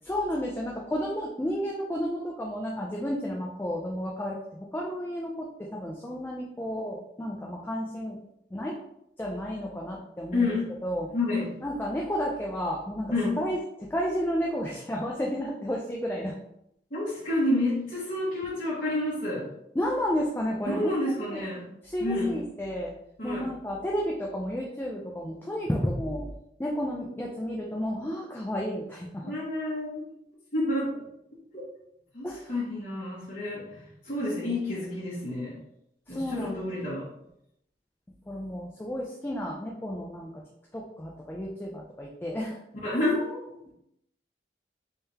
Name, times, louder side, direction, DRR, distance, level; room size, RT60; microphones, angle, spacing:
voice 1, 0.0-8.2 8.5-8.8 9.2-10.5 10.8-11.1 11.6-16.3 19.7-21.4 21.8-22.9 23.2-26.3 26.6-29.3 32.2-32.5 36.1-36.7 38.3-40.4 40.7-42.6, equal, 10° left, -2 dB, 0.4 m, -32 dB
voice 2, 10.3-10.6 11.1-11.5 13.1-13.4 16.9-19.5 20.6-21.6 22.0-22.3 23.2-23.5 29.2-30.0 30.5-31.0 31.5-31.6 32.1-35.5 36.1-37.1 42.8-43.5, left 2 dB, 45° left, -11 dB, 1.4 m, -29 dB
3.6 x 3.3 x 2.8 m, 0.78 s
head